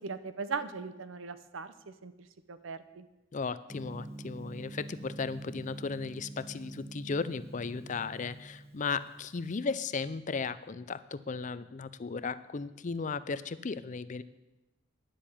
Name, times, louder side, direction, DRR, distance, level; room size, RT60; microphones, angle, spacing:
voice 1, 0.0-2.1 2.5-3.0, right 4 dB, 75° right, 13 dB, 0.8 m, -39 dB
voice 2, 3.3-14.2, left 4 dB, 40° left, 15 dB, 0.5 m, -36 dB
Gong, 3.7-9.6, right 2 dB, 15° right, 0.5 m, -46 dB
10.0 x 7.7 x 8.6 m, 1.0 s
head